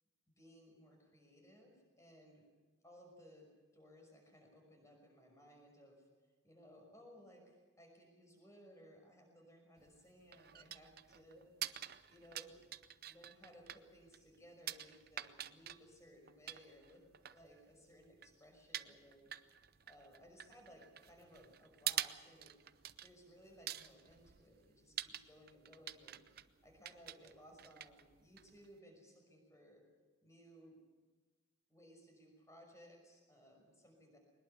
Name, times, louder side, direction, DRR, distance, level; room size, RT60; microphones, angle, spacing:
voice 1, 0.4-2.5 2.8-6.0 6.4-11.5 12.1-12.6 13.1-17.0 17.3-19.3 19.9-22.5 23.0-26.2 26.6-29.8 30.2-30.8 31.7-34.2, equal, 15° left, 2 dB, 5.8 m, -61 dB
sound 1, 9.8-28.8, right 12 dB, 50° right, 0.6 m, -48 dB
22.0 x 20.5 x 7.1 m, 1.3 s
head